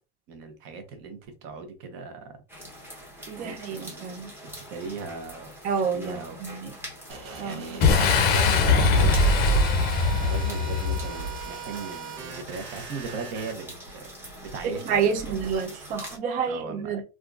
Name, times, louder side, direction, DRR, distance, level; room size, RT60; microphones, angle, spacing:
voice 1, 0.3-2.3 3.4-4.2 4.4-5.5 5.8-6.4 7.4-9.8 10.3-14.1 14.5-15.5 16.5-16.9, right 4 dB, 45° right, 0.9 m, -38 dB
sound 1, 2.5-16.2, equal, 5° right, 0.9 m, -44 dB
voice 2, 3.3-4.3 5.6-6.7 7.4-7.9 14.6-17.0, right 6 dB, 30° right, 0.4 m, -29 dB
sound 2, 7.1-13.5, right 5 dB, 70° right, 1.0 m, -40 dB
Boom, 7.8-11.4, left 3 dB, 30° left, 0.6 m, -21 dB
3.5 x 2.4 x 2.4 m
supercardioid pair, 160°, 30 cm